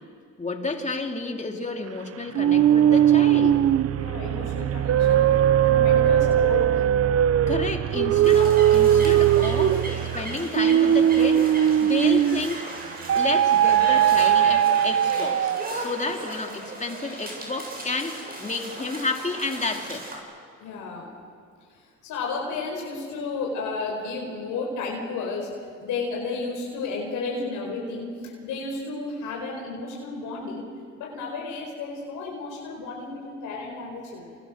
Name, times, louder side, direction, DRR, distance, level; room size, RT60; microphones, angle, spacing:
voice 1, 0.4-3.7 7.5-12.7 13.1-20.1, left 3 dB, 25° left, 3 dB, 3.1 m, -31 dB
sound 1, 2.3-12.6 13.1-15.8, right 10 dB, 50° right, 0.7 m, -20 dB
voice 2, 3.9-5.2 5.6-6.6 20.6-21.1 21.7-25.5 25.8-30.6 31.0-34.4, left 3 dB, 90° left, -1 dB, 4.7 m, -32 dB
sound 2, 8.2-20.2, right 1 dB, 30° right, 7.9 m, -37 dB
28.5 x 28.5 x 6.7 m, 2.2 s
cardioid pair, 90°, 30 cm